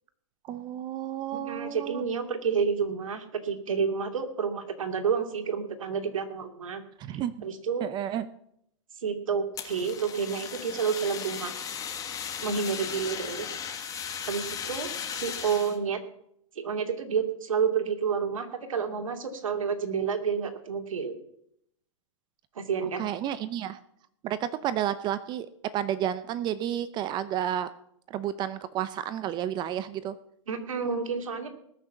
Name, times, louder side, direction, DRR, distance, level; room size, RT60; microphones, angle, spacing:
voice 1, 0.5-2.0 7.0-7.4 7.8-8.3 23.0-23.8 24.2-25.5 25.7-27.7 28.1-30.2, right 11 dB, 25° right, 14 dB, 0.7 m, -31 dB
voice 2, 1.3-6.8 7.4-7.9 9.0-11.6 12.4-13.6 14.3-16.0 16.6-21.2 22.5-23.0 30.5-31.5, right 6 dB, 75° right, 5 dB, 2.7 m, -30 dB
Fire, 9.5-15.8, left 7 dB, 20° left, 1.6 m, -36 dB
20.0 x 6.8 x 7.3 m, 0.74 s
hypercardioid pair, 130°, 17 cm